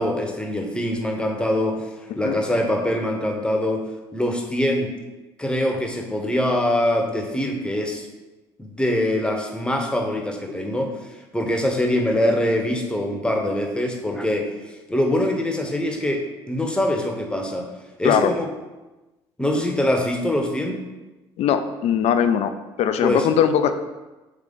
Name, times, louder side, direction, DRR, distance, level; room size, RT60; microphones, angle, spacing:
voice 1, 0.0-1.9 2.2-3.9 4.1-4.9 5.4-8.1 8.6-10.9 11.3-14.5 14.9-17.7 18.0-18.5 19.4-20.8 23.0-23.3, left 1 dB, 5° left, 2 dB, 0.8 m, -23 dB
voice 2, 21.4-22.5 22.8-23.7, left 8 dB, 60° left, 9 dB, 0.4 m, -20 dB
3.7 x 3.2 x 3.6 m, 1.1 s
hypercardioid pair, 60°, 12 cm